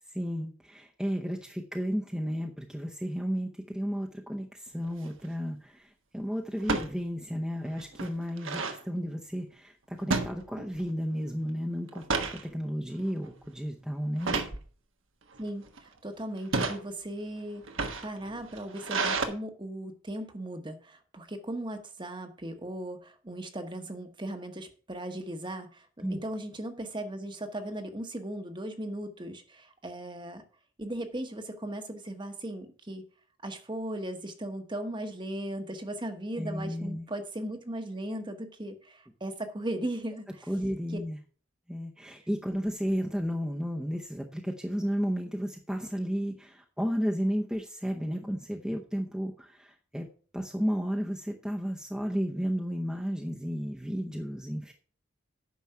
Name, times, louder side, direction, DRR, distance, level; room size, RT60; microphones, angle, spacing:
voice 1, 0.1-12.0 12.3-14.4 26.0-26.2 36.4-37.1 40.5-41.2 41.7-50.0 50.3-54.7, equal, 5° right, 0 dB, 0.7 m, -33 dB
sound 1, 4.8-5.2 6.6-6.9 7.4-7.5 7.8-8.8 10.1-10.9 11.2-11.5 11.9-12.4 13.0-13.3 14.2-14.6 15.3-15.8 16.4-16.8 17.6-19.3, right 3 dB, 75° right, 1.3 m, -31 dB
voice 2, 15.4-30.4 30.8-33.0 33.4-40.5 40.9-41.0, right 1 dB, 20° right, 7 dB, 1.0 m, -37 dB
9.4 x 6.1 x 5.6 m, 0.41 s
head